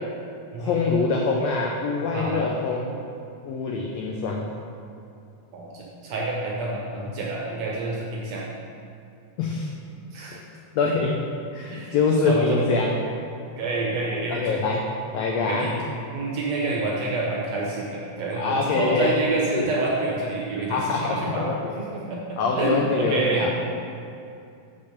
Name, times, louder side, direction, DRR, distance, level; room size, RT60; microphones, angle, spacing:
voice 1, 0.6-2.9 3.4-4.5 9.4-9.7 10.8-11.1 11.5-13.0 14.3-14.9 15.1-15.7 18.3-19.2 19.5-19.7 20.7-21.7 22.4-23.5, left 4 dB, 90° left, 0 dB, 1.5 m, -24 dB
voice 2, 2.1-2.5 5.5-8.4 10.1-10.4 11.7-12.0 12.2-12.6 13.6-14.4 15.5-15.7 16.1-21.5 21.8-23.5, right 2 dB, 75° right, -3 dB, 1.6 m, -28 dB
5.4 x 5.3 x 6.5 m, 2.6 s
omnidirectional pair, 3.7 m